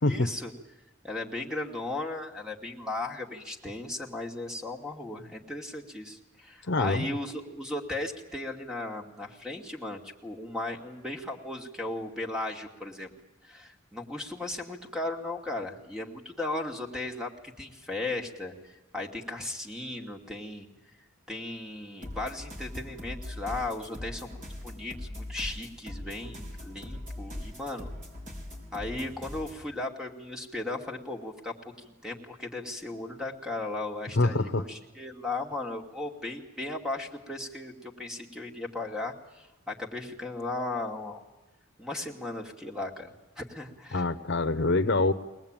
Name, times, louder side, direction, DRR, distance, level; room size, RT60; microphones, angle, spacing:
voice 1, 0.0-0.5 1.0-13.1 13.4-17.3 17.6-20.7 21.3-27.9 28.7-41.2 41.8-44.0, left 2 dB, 5° right, 2 dB, 2.5 m, -36 dB
voice 2, 6.7-7.1 34.2-34.7 43.9-45.1, left 2 dB, 60° left, 9 dB, 1.0 m, -25 dB
sound 1, 22.0-29.6, left 1 dB, 40° right, 4.9 m, -41 dB
23.0 x 19.0 x 9.0 m, 1.1 s
head